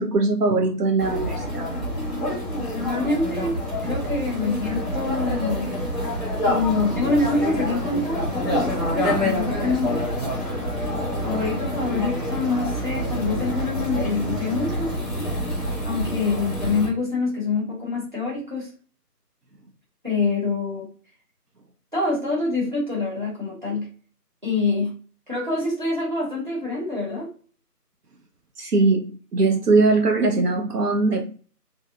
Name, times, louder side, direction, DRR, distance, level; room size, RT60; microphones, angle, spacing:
voice 1, 0.0-1.7 28.6-31.3, right 3 dB, 75° right, 3 dB, 0.6 m, -21 dB
sound 1, 1.0-16.9, equal, ahead, 0.6 m, -27 dB
voice 2, 2.7-5.7 6.4-10.0 11.2-14.9 15.8-18.7 20.0-20.9 21.9-23.9 24.4-24.9 25.3-27.3, left 3 dB, 30° right, -4 dB, 0.9 m, -26 dB
2.6 x 2.1 x 2.4 m, 0.40 s
figure-of-eight pair, 175°, 48 cm